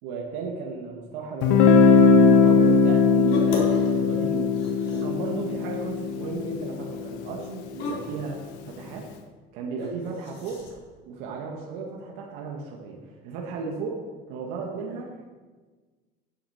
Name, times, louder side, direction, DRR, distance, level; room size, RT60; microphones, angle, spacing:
voice 1, 0.0-9.1 9.5-10.6 11.0-14.0 14.3-15.3, right 4 dB, 85° right, -1 dB, 1.8 m, -35 dB
Guitar, 1.4-7.2, left 5 dB, 85° left, 1.2 m, -19 dB
sound 1, 3.3-3.9 4.2-5.2 5.7-6.1 6.4-6.5 7.8-8.2 9.8-10.7, left 2 dB, 60° left, 4.4 m, -33 dB
9.9 x 8.4 x 7.2 m, 1.4 s
cardioid pair, 125°, 20 cm